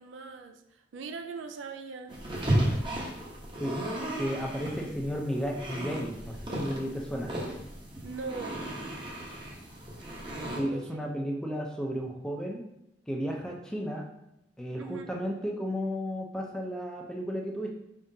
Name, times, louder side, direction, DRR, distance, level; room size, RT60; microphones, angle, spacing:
voice 1, 0.0-2.2 8.0-8.6 10.7-10.8 14.8-15.1, right 4 dB, 85° right, 6 dB, 0.4 m, -40 dB
sound 1, 2.1-10.6, right 1 dB, 25° right, 0.8 m, -34 dB
voice 2, 4.2-7.4 10.6-12.6 13.1-14.1 14.6-17.7, equal, 5° left, 0 dB, 0.5 m, -33 dB
4.8 x 3.6 x 2.7 m, 0.85 s
head